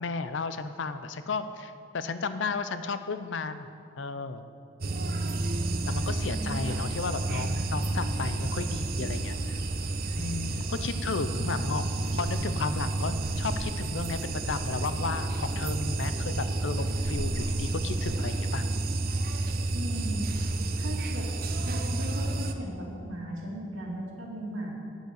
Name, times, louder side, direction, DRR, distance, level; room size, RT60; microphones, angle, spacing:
voice 1, 0.0-3.7 4.0-4.4 5.9-9.6 10.2-18.6, left 4 dB, 70° left, 11 dB, 0.5 m, -34 dB
sound 1, 4.8-22.5, right 2 dB, 45° right, 0.6 m, -30 dB
voice 2, 6.2-6.7 11.3-11.4 19.7-20.3 20.7-21.3 21.6-24.7, equal, 90° right, -2 dB, 2.3 m, -37 dB
9.2 x 8.0 x 6.5 m, 2.4 s
head